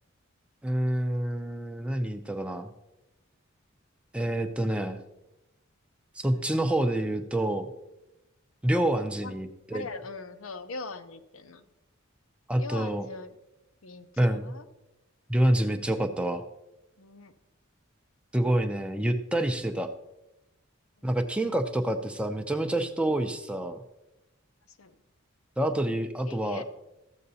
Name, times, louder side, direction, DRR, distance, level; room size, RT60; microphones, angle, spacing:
voice 1, 0.6-2.7 4.1-5.0 6.2-7.7 8.6-9.9 12.5-13.1 14.2-14.5 15.3-16.4 18.3-19.9 21.0-23.8 25.6-26.6, right 1 dB, 5° right, 7 dB, 0.5 m, -27 dB
voice 2, 9.7-11.7 12.6-13.3 13.8-14.7 17.0-17.3 21.0-21.1 24.7-24.9 26.2-26.6, left 3 dB, 85° left, 8 dB, 0.7 m, -41 dB
14.0 x 7.7 x 2.7 m, 0.95 s
head